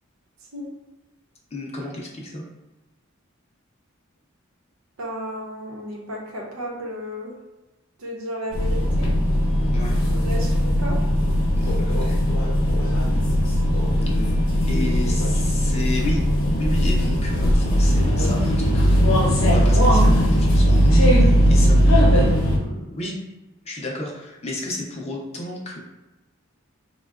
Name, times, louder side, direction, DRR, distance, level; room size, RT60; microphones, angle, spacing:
voice 1, 1.5-2.4 9.7-10.1 11.6-12.2 14.7-16.2 16.5-23.2 23.7-25.8, left 1 dB, 30° left, -1 dB, 0.5 m, -32 dB
voice 2, 5.0-7.3 8.0-9.1 10.2-11.0, equal, 85° right, -2 dB, 0.8 m, -33 dB
sound 1, 8.5-22.6, equal, 75° left, 0.7 m, -18 dB
3.7 x 2.1 x 2.3 m, 1.1 s
head